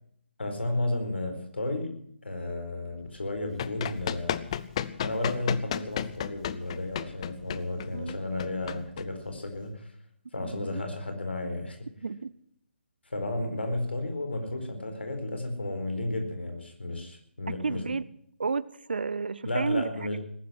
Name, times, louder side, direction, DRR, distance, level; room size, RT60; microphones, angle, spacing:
voice 1, 0.4-4.4 5.0-9.9 10.3-11.9 13.1-17.9 19.4-20.2, left 2 dB, 70° left, 6 dB, 4.4 m, -33 dB
Run, 3.2-9.7, left 9 dB, 30° left, 0.7 m, -34 dB
voice 2, 10.4-10.8 12.0-12.3 17.6-18.1 18.4-19.9, right 4 dB, 60° right, 19 dB, 0.8 m, -31 dB
19.5 x 11.5 x 6.1 m, 0.67 s
figure-of-eight pair, 140°, 6 cm